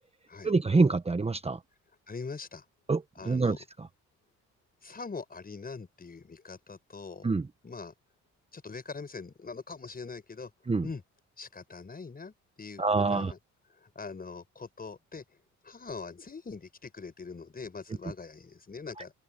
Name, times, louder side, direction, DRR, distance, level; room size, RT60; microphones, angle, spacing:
voice 1, 0.4-1.6 2.9-3.9 7.2-7.5 10.7-10.9 12.8-13.3 19.0-19.1, right 3 dB, 20° right, 1.2 m, -26 dB
voice 2, 2.1-2.6 3.2-3.6 4.8-7.3 7.6-7.9 8.5-10.5 10.8-11.0 11.4-13.4 13.8-15.4 15.6-19.1, left 4 dB, 30° left, 5.9 m, -42 dB
open air
cardioid pair, 90°, 30 cm